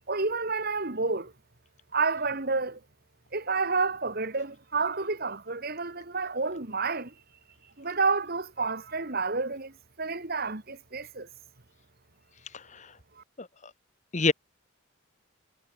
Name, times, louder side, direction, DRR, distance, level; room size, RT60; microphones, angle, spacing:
voice 1, 0.1-1.3 1.9-2.8 3.3-7.1 7.8-11.3 13.2-13.3, right 4 dB, 45° right, 1.8 m, -30 dB
voice 2, 12.5-12.9 13.4-13.5 14.1-14.3, left 3 dB, 35° left, 1.2 m, -26 dB
head